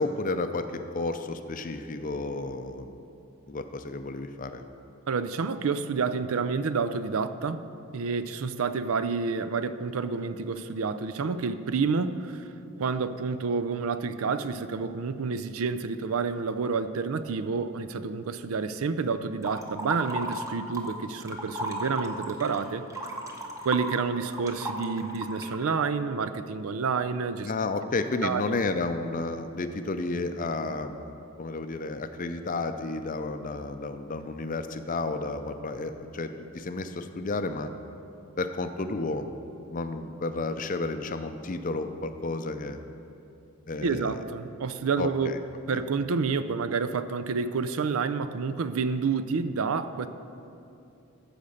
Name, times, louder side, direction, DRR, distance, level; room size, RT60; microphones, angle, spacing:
voice 1, 0.0-3.0 3.5-4.6 27.4-37.7 38.4-39.3 39.7-42.8 43.7-44.2 45.0-45.4 45.7-45.8, left 3 dB, 35° left, 8 dB, 0.5 m, -32 dB
voice 2, 5.1-7.6 7.9-12.5 12.8-22.8 23.6-27.5 28.2-28.6 43.8-45.3 45.7-50.1, right 5 dB, 70° right, 12 dB, 0.4 m, -29 dB
sound 1, 19.4-20.9 21.2-25.6, right 1 dB, 15° right, 0.8 m, -35 dB
14.0 x 5.1 x 6.5 m, 2.7 s
head